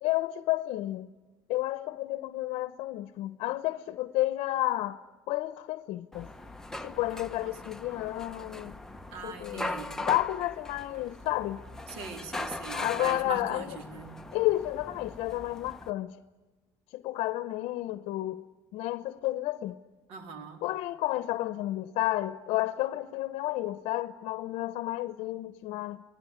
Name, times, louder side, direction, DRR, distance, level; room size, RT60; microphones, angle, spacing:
voice 1, 0.0-1.1 1.5-5.0 5.3-6.3 6.8-8.7 9.2-9.7 10.0-11.6 12.7-13.7 14.3-16.2 16.9-18.4 18.7-19.8 20.6-26.0, left 16 dB, 75° left, 0.8 m, -31 dB
sound 1, 6.1-15.9, left 2 dB, 5° left, 0.9 m, -40 dB
voice 2, 7.4-7.8 9.1-10.0 11.9-14.2 20.1-20.6, right 4 dB, 80° right, 3.6 m, -42 dB
29.0 x 19.5 x 9.6 m
cardioid pair, 130°, 10 cm